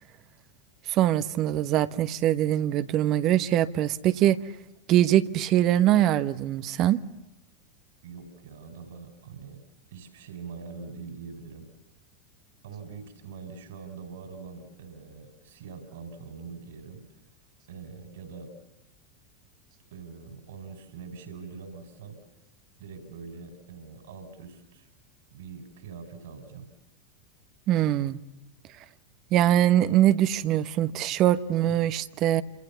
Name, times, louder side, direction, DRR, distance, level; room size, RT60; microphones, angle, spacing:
voice 1, 0.9-4.4 4.9-7.0 27.7-28.2 29.3-32.4, right 12 dB, 40° right, 1.2 m, -23 dB
voice 2, 8.0-9.6 9.9-11.7 12.6-17.1 17.7-18.5 19.9-22.2 22.8-24.9 25.3-26.7, right 5 dB, 65° right, 4.8 m, -43 dB
28.5 x 27.0 x 7.1 m
figure-of-eight pair, 85°, 0 cm